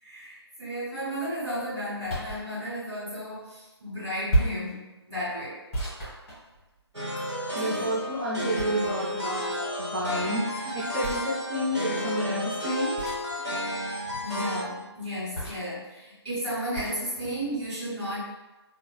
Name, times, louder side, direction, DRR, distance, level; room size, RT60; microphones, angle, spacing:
voice 1, 0.0-5.6 7.6-7.9 13.4-13.5 14.1-18.2, equal, 15° right, -15 dB, 1.3 m, -34 dB
sound 1, 2.0-2.5 4.3-4.7 5.7-6.9 8.6-9.2 11.0-11.3 13.0-13.3 15.3-15.8 16.7-17.0, right 1 dB, 5° left, 0.9 m, -31 dB
sound 2, 6.9-14.6, equal, 80° right, 1.0 m, -32 dB
voice 2, 7.5-9.5 9.8-13.0, equal, 50° right, -7 dB, 0.7 m, -30 dB
3.5 x 2.0 x 2.3 m, 1.1 s
figure-of-eight pair, 155°, 14 cm